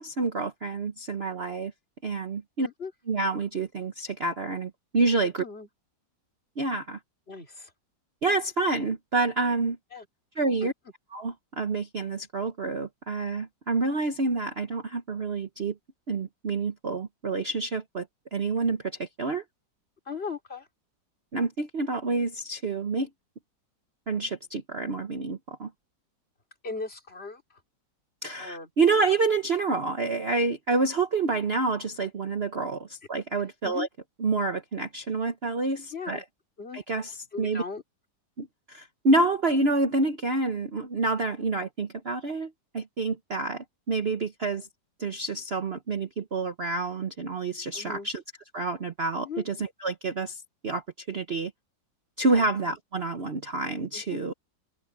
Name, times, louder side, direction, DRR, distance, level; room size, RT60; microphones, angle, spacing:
voice 1, 0.0-1.7 2.0-2.7 3.1-5.4 6.6-7.0 8.2-9.8 10.4-10.7 11.1-15.7 16.1-18.1 18.3-19.4 21.3-23.1 24.1-25.7 28.2-33.9 34.2-36.2 36.7-37.6 38.4-44.7 45.0-48.2 48.5-51.5 52.2-54.3, right 3 dB, 40° right, 1.1 m, -28 dB
voice 2, 2.6-2.9 5.4-5.7 7.3-7.7 9.9-10.0 10.6-10.7 20.1-20.7 26.6-27.4 28.4-28.7 33.6-33.9 35.9-36.2 36.6-36.8 37.3-37.8 47.7-48.1 49.2-49.4 52.3-52.5 53.9-54.2, left 5 dB, 35° left, 3.1 m, -37 dB
omnidirectional pair, 2.0 m